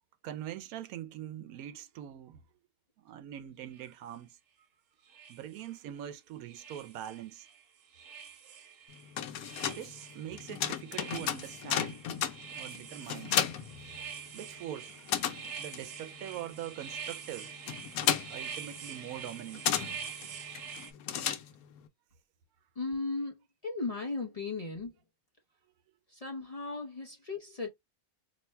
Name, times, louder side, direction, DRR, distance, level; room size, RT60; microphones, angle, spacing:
voice 1, 0.2-2.4 3.0-4.4 5.3-7.5 9.6-12.1 12.5-13.3 14.3-15.2 15.6-17.5 18.0-19.8, right 11 dB, 90° right, 1.0 m, -43 dB
sound 1, 3.7-3.9 5.1-6.0 6.5-7.6 7.9-20.9, right 7 dB, 70° right, 1.1 m, -46 dB
sound 2, 8.9-14.5 14.8-21.9, left 9 dB, 85° left, 1.1 m, -34 dB
voice 2, 22.8-23.3 23.6-24.9 26.1-27.7, left 3 dB, 35° left, 0.6 m, -36 dB
2.9 x 2.2 x 4.2 m
omnidirectional pair, 1.5 m